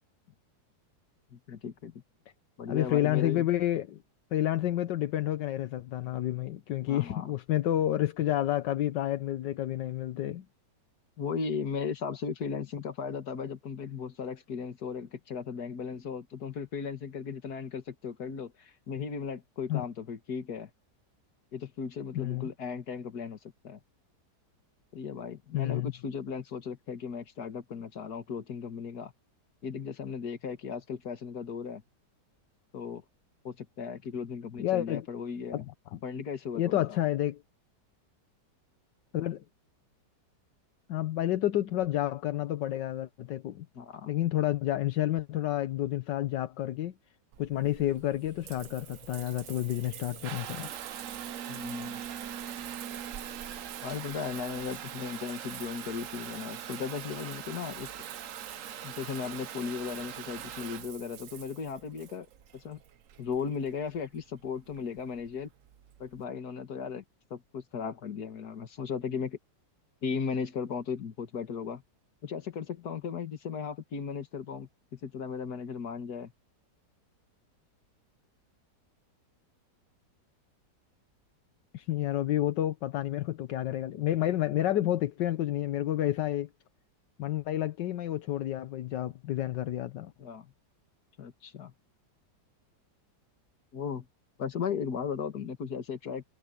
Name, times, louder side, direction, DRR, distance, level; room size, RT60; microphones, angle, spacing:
voice 1, 1.3-2.0 2.6-3.5 6.8-7.4 11.2-20.7 21.5-23.4 23.6-23.8 24.9-29.1 29.6-31.8 32.7-33.0 33.4-35.6 36.0-37.0 43.8-44.1 51.5-52.0 53.8-57.9 58.8-62.3 62.5-62.8 63.2-65.5 66.0-67.0 67.3-69.4 70.0-71.8 72.2-76.3 90.2-90.5 91.2-91.7 93.7-94.1 94.4-96.2, left 6 dB, 60° left, 2.2 m, -36 dB
voice 2, 2.7-4.0 4.3-10.5 19.7-19.8 22.1-22.5 25.5-25.9 34.6-35.1 35.5-36.0 36.5-37.4 39.1-39.4 40.9-43.7 44.1-46.9 47.4-50.7 81.7-86.5 87.2-90.1, left 13 dB, 80° left, 1.5 m, -30 dB
Water tap faucet / Bathtub (filling or washing) / Trickle dribble, 47.3-66.2, right 10 dB, 60° right, 1.0 m, -42 dB
omnidirectional pair, 1.9 m